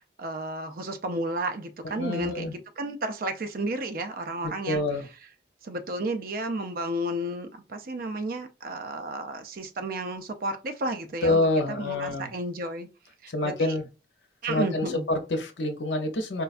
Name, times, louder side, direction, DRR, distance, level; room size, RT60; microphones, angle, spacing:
voice 1, 0.0-4.8 5.6-11.4 11.7-12.9 13.2-13.7 14.4-15.0, right 1 dB, 50° right, 0.5 m, -32 dB
voice 2, 2.0-2.5 4.4-5.1 11.2-12.3 13.3-13.9 14.5-16.4, left 2 dB, 75° left, 0.7 m, -27 dB
4.4 x 2.2 x 2.4 m
head